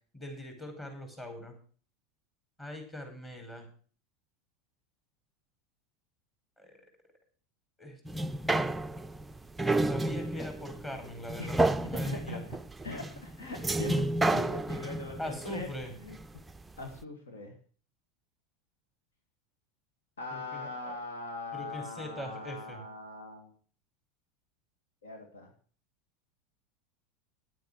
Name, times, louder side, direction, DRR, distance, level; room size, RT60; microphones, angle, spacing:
voice 1, 0.1-1.6 2.6-3.7 6.6-6.8 7.8-8.7 9.9-12.5 15.2-15.9 20.3-21.0 21.5-22.8, left 1 dB, 20° left, 4 dB, 5.1 m, -42 dB
sound 1, 8.0-16.6 17.0-17.1, right 2 dB, 10° right, 0.5 m, -31 dB
voice 2, 12.0-12.6 12.8-15.7 16.0-16.2 16.8-17.6 20.2-23.5 25.0-25.5, left 3 dB, 75° left, 4 dB, 2.2 m, -41 dB
10.5 x 9.2 x 6.5 m, 0.42 s
figure-of-eight pair, 80°, 0 cm